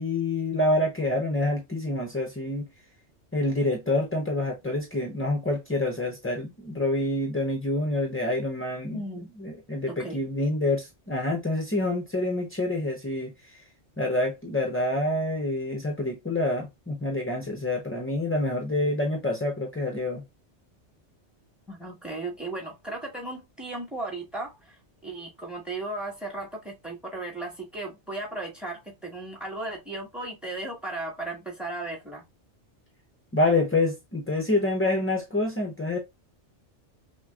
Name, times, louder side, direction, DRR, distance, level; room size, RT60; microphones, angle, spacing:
voice 1, 0.0-2.7 3.3-13.6 14.0-20.2 33.3-36.0, left 2 dB, 20° left, 0.4 m, -27 dB
voice 2, 8.9-9.3 9.9-10.2 21.7-32.2, right 2 dB, ahead, 1.2 m, -36 dB
5.9 x 2.2 x 2.3 m
omnidirectional pair, 1.2 m